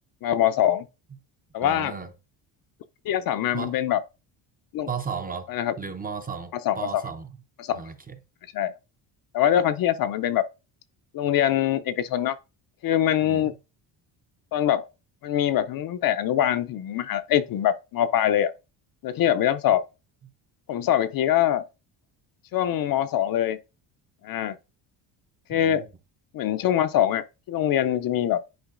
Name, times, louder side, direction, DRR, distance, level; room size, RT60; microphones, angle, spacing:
voice 1, 0.2-0.9 1.5-1.9 3.1-4.0 4.7-4.9 5.5-5.8 6.7-7.0 7.6-7.8 8.5-8.7 9.3-10.4 11.1-12.4 12.8-13.5 14.5-14.9 15.2-18.5 19.0-19.9 20.7-21.6 22.5-23.6 24.2-24.6 25.5-25.8 26.3-28.4, left 11 dB, 50° left, 0.5 m, -23 dB
voice 2, 1.6-2.1 3.5-3.8 4.9-5.5 5.8-7.3 7.7-8.2 13.2-13.5 25.5-25.9, right 5 dB, 20° right, 0.5 m, -34 dB
10.5 x 4.5 x 2.4 m
cardioid pair, 125°, 45 cm